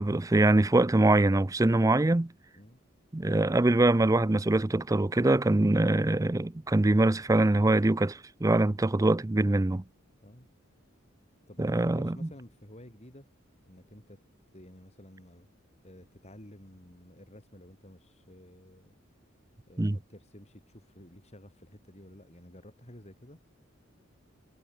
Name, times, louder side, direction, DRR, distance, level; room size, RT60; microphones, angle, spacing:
voice 1, 0.0-2.3 3.1-9.8 11.6-12.2 19.8-20.0, right 2 dB, 15° right, 0.5 m, -23 dB
voice 2, 10.2-10.6 11.5-13.3 13.7-14.2 14.5-15.5 15.8-19.0 19.7-23.4, left 1 dB, 35° left, 7.1 m, -52 dB
head